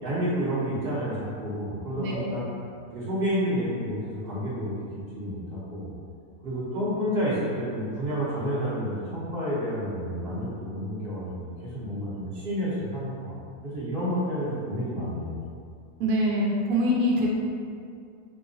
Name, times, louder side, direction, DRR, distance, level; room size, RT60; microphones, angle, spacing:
voice 1, 0.0-2.4 2.9-5.9 6.4-13.4 13.6-15.4, equal, 45° right, -9 dB, 1.0 m, -30 dB
voice 2, 2.0-2.3 16.0-17.3, equal, 75° right, -3 dB, 1.1 m, -24 dB
4.4 x 2.9 x 2.6 m, 2.3 s
omnidirectional pair, 1.6 m